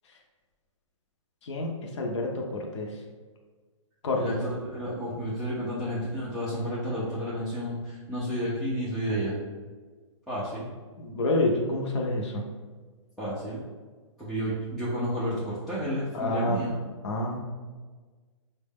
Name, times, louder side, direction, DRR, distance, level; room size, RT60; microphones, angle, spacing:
voice 1, 1.4-2.4 2.7-2.9 4.0-4.2 11.0-12.4 16.1-16.6 17.0-17.4, left 2 dB, 60° left, 0 dB, 0.6 m, -28 dB
voice 2, 4.1-9.4 10.3-10.7 13.2-13.6 14.2-16.7, equal, ahead, -12 dB, 0.3 m, -31 dB
4.4 x 2.1 x 3.4 m, 1.4 s
hypercardioid pair, 155°, 17 cm